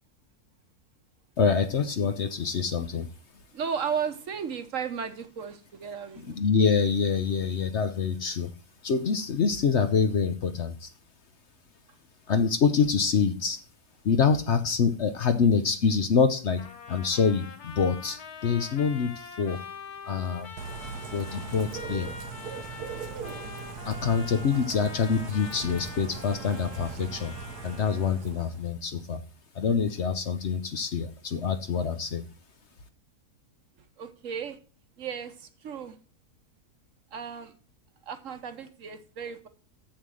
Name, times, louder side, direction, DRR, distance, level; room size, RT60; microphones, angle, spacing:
voice 1, 1.4-3.1 6.2-8.5 8.8-10.9 12.3-13.6 14.0-19.6 20.0-20.5 21.1-22.1 23.8-27.3 27.6-29.2 29.5-32.2, left 6 dB, 55° left, 9 dB, 0.9 m, -26 dB
voice 2, 3.5-6.4 34.0-34.6 35.0-36.0 37.1-37.5 38.0-39.5, right 7 dB, 60° right, 9 dB, 1.2 m, -34 dB
Trumpet, 16.6-28.2, left 5 dB, 80° left, 1.9 m, -44 dB
Bird / Rain, 20.6-28.7, right 6 dB, 90° right, 1.4 m, -40 dB
7.4 x 7.2 x 6.3 m, 0.37 s
omnidirectional pair, 1.6 m